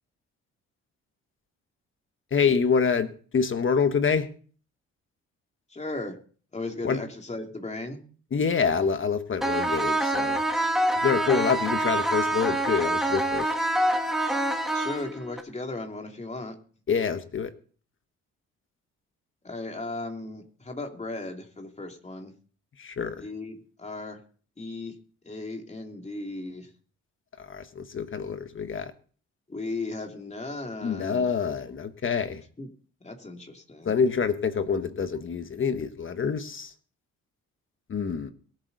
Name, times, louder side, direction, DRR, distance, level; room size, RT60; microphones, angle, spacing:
voice 1, 2.3-4.3 6.8-7.0 8.3-10.4 11.0-13.6 16.9-17.5 22.8-23.3 27.4-28.9 30.8-32.4 33.8-36.7 37.9-38.3, left 6 dB, 40° left, 9 dB, 1.4 m, -26 dB
voice 2, 5.7-6.2 6.5-8.0 14.7-16.5 19.4-22.3 23.2-24.2 24.6-24.9 25.2-26.7 29.5-31.3 32.6-32.7 33.0-34.0, left 2 dB, 20° left, 3 dB, 2.8 m, -36 dB
sound 1, 9.4-15.4, right 1 dB, ahead, 2.4 m, -26 dB
22.5 x 7.9 x 4.1 m, 0.44 s
cardioid pair, 90°, 30 cm